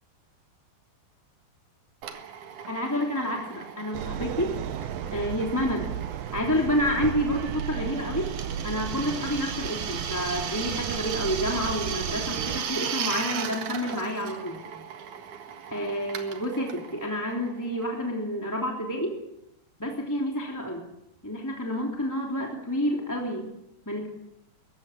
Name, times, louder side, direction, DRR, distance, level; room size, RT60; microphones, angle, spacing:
Drill, 2.0-18.4, right 8 dB, 55° right, 2.6 m, -37 dB
voice 1, 2.7-5.9 6.3-8.3 8.6-14.7 15.7-19.2 19.8-20.8 21.2-23.4 23.9-24.1, equal, 5° left, -1 dB, 2.1 m, -29 dB
sound 1, 3.9-12.6, right 9 dB, 75° right, 2.4 m, -34 dB
21.5 x 15.5 x 8.9 m, 0.86 s
omnidirectional pair, 5.1 m